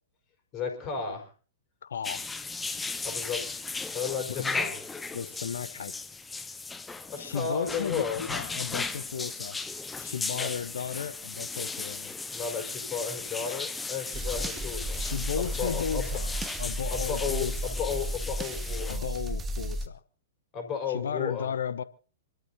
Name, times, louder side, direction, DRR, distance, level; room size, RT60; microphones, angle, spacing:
voice 1, 0.5-1.3 3.0-3.5 3.9-4.8 7.1-8.2 10.4-10.5 12.3-15.1 15.3-16.1 16.9-19.0 20.5-21.5, left 6 dB, 30° left, 5.4 m, -33 dB
voice 2, 1.8-2.2 4.4-4.5 5.1-5.9 7.2-9.6 10.0-12.1 15.0-17.8 18.9-20.0 20.9-21.8, left 7 dB, 65° left, 1.0 m, -34 dB
sound 1, 2.0-19.0, left 3 dB, 10° left, 0.9 m, -36 dB
sound 2, 14.1-19.9, right 1 dB, 15° right, 1.6 m, -33 dB
27.5 x 13.0 x 2.8 m
figure-of-eight pair, 110°, 0 cm